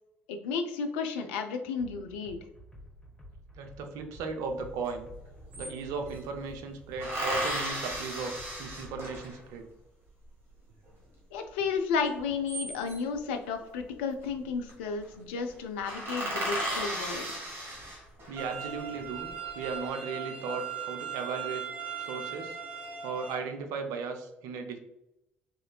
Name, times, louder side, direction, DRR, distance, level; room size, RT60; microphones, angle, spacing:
voice 1, 0.3-2.4 11.3-17.2, left 5 dB, 75° left, 5 dB, 0.4 m, -33 dB
sound 1, 1.8-9.3, equal, 15° left, 1.2 m, -51 dB
voice 2, 3.6-5.1 5.6-9.7 18.3-21.7 22.0-22.6 23.0-24.8, right 4 dB, 65° right, 5 dB, 0.5 m, -36 dB
sound 2, 4.9-5.0 5.2-6.2 7.0-9.5 12.2-13.2 14.3-14.7 15.0-15.1 15.5-15.6 15.8-18.4 19.0-19.6, right 1 dB, 45° right, 1.5 m, -35 dB
sound 3, 18.4-23.4, right 7 dB, 20° right, 1.2 m, -39 dB
3.7 x 3.0 x 2.2 m, 0.88 s
figure-of-eight pair, 50°, 6 cm